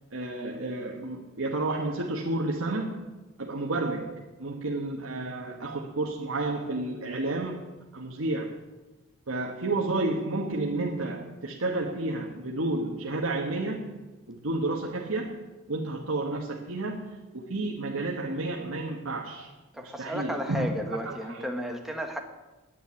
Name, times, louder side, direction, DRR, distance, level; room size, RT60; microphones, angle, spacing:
voice 1, 0.1-8.6 9.3-14.0 14.3-19.5 19.8-20.7 21.0-21.5, right 2 dB, 85° right, 1.3 m, -31 dB
voice 2, 19.7-22.2, equal, ahead, 1.4 m, -33 dB
10.0 x 8.8 x 9.6 m
head